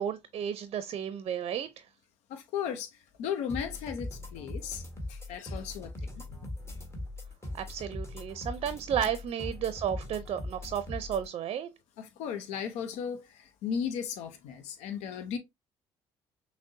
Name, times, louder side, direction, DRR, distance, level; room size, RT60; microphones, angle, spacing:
voice 1, 0.0-1.8 7.5-11.7, right 9 dB, 55° right, 0.5 m, -33 dB
voice 2, 2.3-6.1 12.0-15.4, left 8 dB, 75° left, 0.6 m, -36 dB
sound 1, 3.5-11.3, left 1 dB, 20° left, 1.5 m, -40 dB
5.9 x 2.1 x 2.7 m
supercardioid pair, 65°, 11 cm